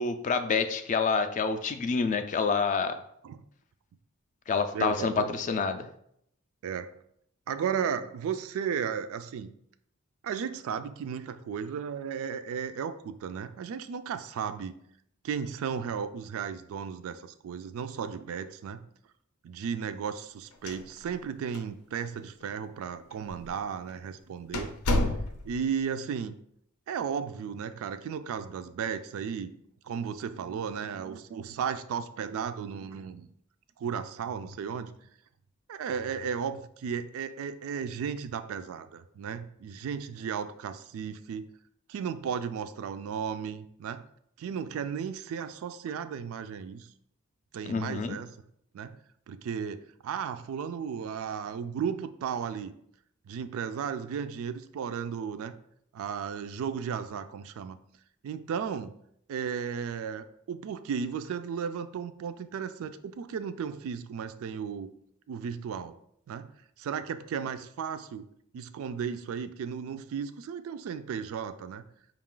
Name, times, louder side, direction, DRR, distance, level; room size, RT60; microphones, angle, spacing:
voice 1, 0.0-3.0 4.5-5.9 47.7-48.2, left 5 dB, 35° left, 9 dB, 0.3 m, -27 dB
voice 2, 4.7-5.4 6.6-6.9 7.5-9.5 10.2-14.8 15.2-18.8 19.4-24.7 25.4-26.4 26.9-29.5 29.8-33.3 33.8-34.9 35.7-41.4 41.9-44.0 44.4-46.9 47.5-48.3 48.7-49.0 49.3-52.7 53.3-55.5 55.9-57.8 58.2-59.0 59.3-64.9 65.3-66.0 66.3-66.5 66.8-68.3 68.5-71.8, right 7 dB, 65° right, 12 dB, 0.3 m, -34 dB
sound 1, 20.5-21.3 21.5-21.6 22.4-22.5 23.3-23.5 23.9-24.0 24.5-25.7, left 1 dB, 85° left, 0.6 m, -29 dB
4.8 x 2.4 x 3.7 m, 0.71 s
head